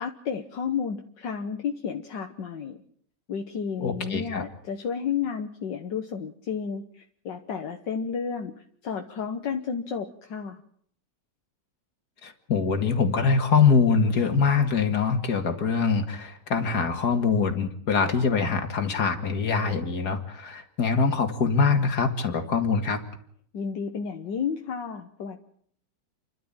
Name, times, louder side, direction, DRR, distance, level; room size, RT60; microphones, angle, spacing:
voice 1, 0.0-2.8 3.3-8.5 8.8-10.6 23.5-25.4, left 6 dB, 75° left, 4 dB, 1.9 m, -32 dB
voice 2, 3.8-4.4 12.2-23.0, left 5 dB, 60° left, 7 dB, 2.6 m, -24 dB
29.5 x 12.0 x 9.0 m, 0.63 s
omnidirectional pair, 2.0 m